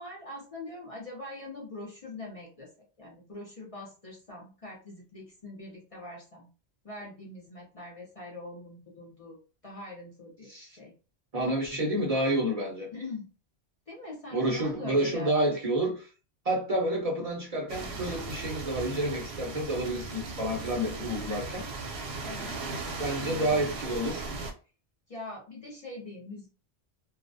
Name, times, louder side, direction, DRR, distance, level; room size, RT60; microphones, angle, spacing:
voice 1, 0.0-2.7 3.0-6.5 6.8-10.9 12.9-13.3 13.9-15.3 22.2-22.6 22.9-23.6 25.1-26.5, left 2 dB, 40° left, 0.6 m, -43 dB
voice 2, 11.3-12.9 14.3-16.1 16.4-21.6 23.0-24.3, right 1 dB, 40° right, 0.6 m, -29 dB
sound 1, 17.7-24.5, right 3 dB, 80° right, 0.9 m, -37 dB
2.3 x 2.0 x 2.5 m
omnidirectional pair, 1.1 m